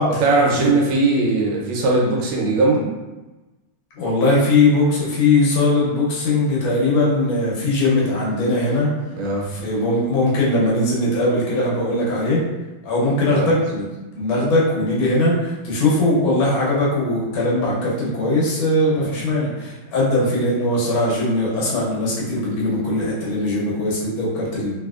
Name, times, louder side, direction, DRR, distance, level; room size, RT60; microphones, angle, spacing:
voice 1, 0.2-2.9 9.2-9.5 13.3-13.6 19.0-19.1, right 3 dB, 75° right, -2 dB, 1.4 m, -19 dB
voice 2, 4.0-8.9 9.4-12.4 12.8-24.8, left 2 dB, 70° left, -6 dB, 1.6 m, -20 dB
3.5 x 2.7 x 2.3 m, 1.1 s
omnidirectional pair, 2.3 m